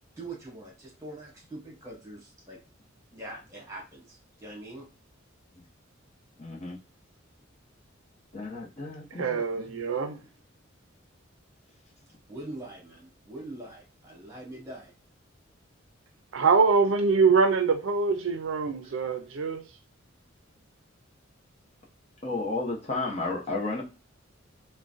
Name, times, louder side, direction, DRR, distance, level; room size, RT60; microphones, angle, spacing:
voice 1, 0.2-2.6 3.1-4.9 12.3-14.9, right 2 dB, 15° right, 1.4 m, -43 dB
voice 2, 6.4-6.8 8.3-9.7 22.2-23.8, left 3 dB, 35° left, 0.8 m, -33 dB
voice 3, 9.1-10.2 16.3-19.6, right 4 dB, 70° right, 0.5 m, -24 dB
3.7 x 2.2 x 2.4 m
head